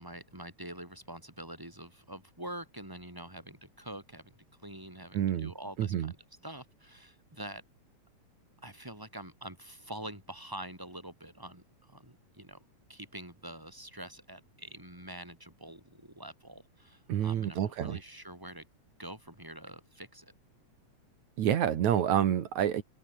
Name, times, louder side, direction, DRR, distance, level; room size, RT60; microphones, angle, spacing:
voice 1, 0.0-4.3 4.6-6.2 6.4-7.6 8.6-12.6 12.9-18.6 19.0-20.3, right 1 dB, 5° right, 6.8 m, -45 dB
voice 2, 5.1-5.5 5.8-6.1 17.1-18.0 21.4-22.8, right 10 dB, 75° right, 3.0 m, -28 dB
open air
omnidirectional pair, 3.3 m